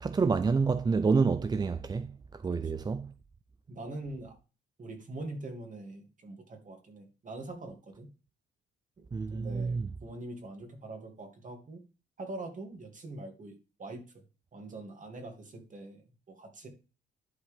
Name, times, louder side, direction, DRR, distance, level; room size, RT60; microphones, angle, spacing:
voice 1, 0.0-2.1 2.4-3.1 9.1-9.9, right 4 dB, 20° right, 0.4 m, -28 dB
voice 2, 3.7-4.4 4.8-8.1 9.0-9.1 9.3-11.8 12.2-14.2 14.5-16.7, right 2 dB, 40° right, 2.6 m, -43 dB
11.0 x 4.7 x 3.6 m
cardioid pair, 90°, 20 cm